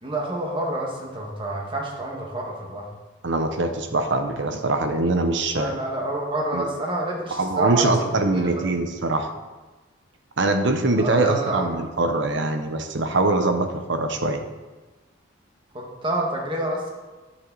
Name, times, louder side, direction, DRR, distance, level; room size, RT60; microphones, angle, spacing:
voice 1, 0.0-2.9 5.5-8.0 8.3-8.5 11.0-11.8 15.7-16.9, right 1 dB, 25° right, -1 dB, 1.7 m, -28 dB
voice 2, 3.2-5.7 6.5-6.6 7.3-9.3 10.4-14.4, right 2 dB, 65° right, 7 dB, 0.9 m, -23 dB
9.7 x 7.4 x 4.1 m, 1.2 s
head